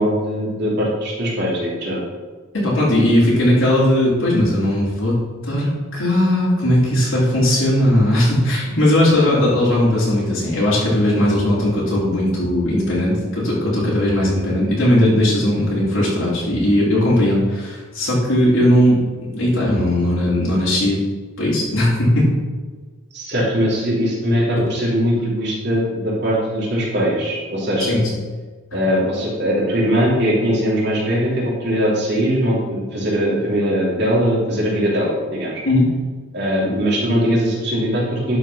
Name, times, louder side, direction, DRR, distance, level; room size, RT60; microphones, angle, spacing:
voice 1, 0.0-2.0 23.1-28.0 28.7-35.5 36.3-38.4, equal, 55° right, -6 dB, 2.9 m, -20 dB
voice 2, 2.5-21.0 21.4-22.3 27.8-28.1 35.6-35.9, left 1 dB, 75° left, -7 dB, 3.0 m, -18 dB
11.5 x 4.4 x 5.6 m, 1.4 s
head